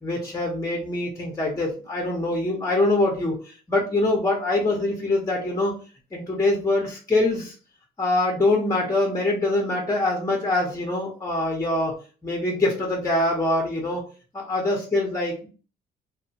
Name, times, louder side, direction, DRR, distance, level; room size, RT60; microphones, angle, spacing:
voice 1, 0.0-5.7 6.1-7.5 8.0-12.0 12.2-14.0 14.3-15.5, left 2 dB, 15° left, -1 dB, 0.9 m, -24 dB
3.0 x 2.3 x 2.8 m, 0.37 s
cardioid pair, 90°, 20 cm